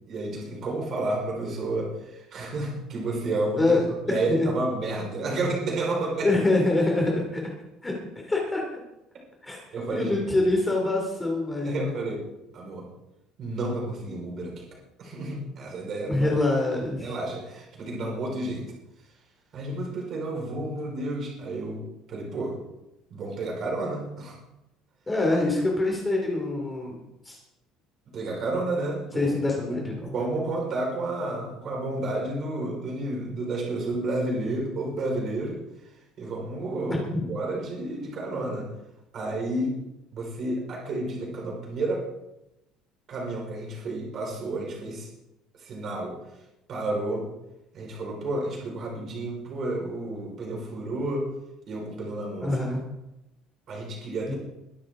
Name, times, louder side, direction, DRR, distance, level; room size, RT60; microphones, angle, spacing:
voice 1, 0.1-3.7 4.1-6.3 9.7-10.5 11.6-12.3 12.5-12.9 13.4-14.7 15.0-16.3 17.0-18.7 19.5-21.8 22.1-22.6 23.1-24.4 28.1-29.3 29.7-35.6 36.2-38.7 39.1-39.8 40.1-42.1 43.1-45.1 45.6-46.2 46.7-47.3 47.7-51.3 51.7-52.5 53.7-54.3, right 2 dB, 35° right, -1 dB, 4.9 m, -31 dB
voice 2, 3.6-4.5 6.2-7.5 7.8-8.6 9.4-9.6 9.9-11.9 16.1-17.1 25.1-27.0 27.2-27.4 29.1-30.1 37.1-37.2 52.4-52.8 54.3-54.4, left 2 dB, 10° left, -1 dB, 2.8 m, -25 dB
22.0 x 12.0 x 3.8 m, 0.90 s
cardioid pair, 175°, 0 cm